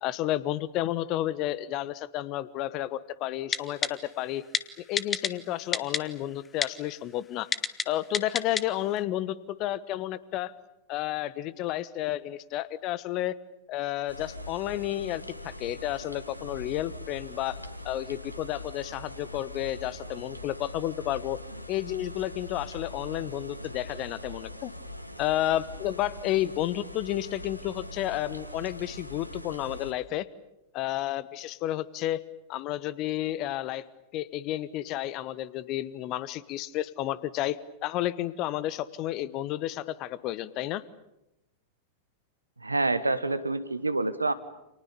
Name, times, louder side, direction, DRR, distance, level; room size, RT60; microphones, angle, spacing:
voice 1, 0.0-4.4 4.8-7.5 7.9-10.5 10.9-13.4 13.7-17.6 17.8-21.4 21.7-24.7 25.2-30.3 30.7-32.2 32.5-33.8 34.1-40.8, left 14 dB, 40° left, 19 dB, 1.2 m, -31 dB
Typing, 3.5-3.9 4.5-4.6 5.0-5.3 5.7-6.0 6.6-6.7 7.5-7.8 8.1-8.6 9.0-9.1, left 6 dB, 20° left, 1.4 m, -26 dB
sound 1, 14.1-29.9, left 1 dB, 90° left, 1.9 m, -42 dB
voice 2, 42.6-44.3, right 2 dB, 80° right, 13 dB, 1.5 m, -27 dB
30.0 x 28.0 x 7.0 m, 0.88 s
figure-of-eight pair, 90°, 0 cm